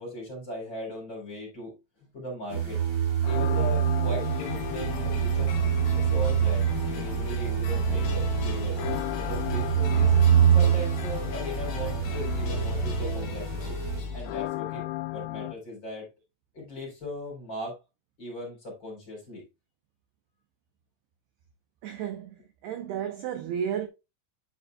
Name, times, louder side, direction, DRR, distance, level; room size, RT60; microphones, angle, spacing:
voice 1, 0.0-2.8 3.3-5.6 5.9-8.8 9.1-10.1 10.5-13.8 14.1-16.1 16.5-17.8 18.2-19.4, left 1 dB, 25° left, 3.7 m, -38 dB
sound 1, 2.5-14.0, right 9 dB, 30° right, 1.4 m, -26 dB
sound 2, 3.2-15.5, left 19 dB, 90° left, 3.3 m, -38 dB
sound 3, 4.2-14.4, left 6 dB, 60° left, 3.1 m, -35 dB
voice 2, 21.8-23.9, right 9 dB, 75° right, 2.4 m, -33 dB
10.5 x 5.5 x 2.3 m
omnidirectional pair, 5.6 m